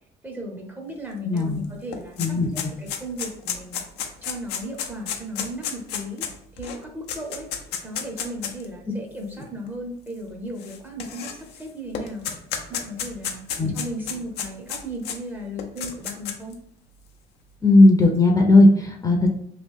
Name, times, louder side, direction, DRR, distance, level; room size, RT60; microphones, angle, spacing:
voice 1, 0.2-2.3 2.5-3.8 4.2-6.3 6.6-7.5 7.8-12.3 12.7-13.4 13.7-16.6, equal, 10° right, 0 dB, 0.7 m, -35 dB
voice 2, 1.2-1.6 2.2-2.7 13.6-13.7 17.6-19.3, left 2 dB, 20° left, 1 dB, 0.6 m, -16 dB
sound 1, 1.4-1.5 1.7-8.6 9.4-9.5 10.6-11.6 11.9-15.2 15.6-16.5, left 8 dB, 85° left, 0.6 m, -31 dB
3.1 x 2.4 x 3.6 m, 0.71 s
cardioid pair, 110°, 17 cm